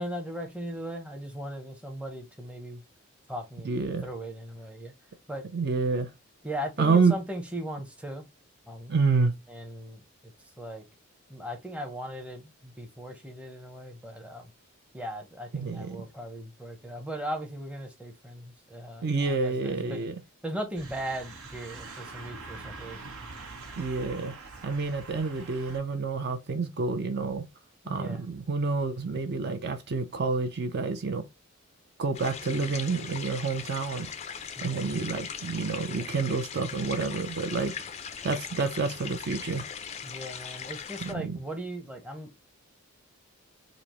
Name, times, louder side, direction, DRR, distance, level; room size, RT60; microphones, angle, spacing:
voice 1, 0.0-2.8 3.3-3.7 4.0-4.9 5.3-5.5 6.4-8.3 8.7-8.9 9.5-10.0 10.6-10.8 11.3-14.5 14.9-20.1 20.4-23.2 27.8-28.2 34.6-34.8 40.0-42.4, equal, 5° right, 0.6 m, -38 dB
voice 2, 3.6-4.0 5.5-6.1 6.8-7.1 8.9-9.4 15.5-16.0 19.0-20.2 23.8-24.3 24.6-27.5 27.9-31.2 32.0-34.1 34.6-37.7 38.2-39.7 41.0-41.4, right 4 dB, 50° right, 0.4 m, -28 dB
sound 1, 20.7-25.8, right 3 dB, 80° right, 0.9 m, -44 dB
sound 2, 32.1-41.1, left 7 dB, 30° left, 0.3 m, -40 dB
5.0 x 2.0 x 2.9 m
head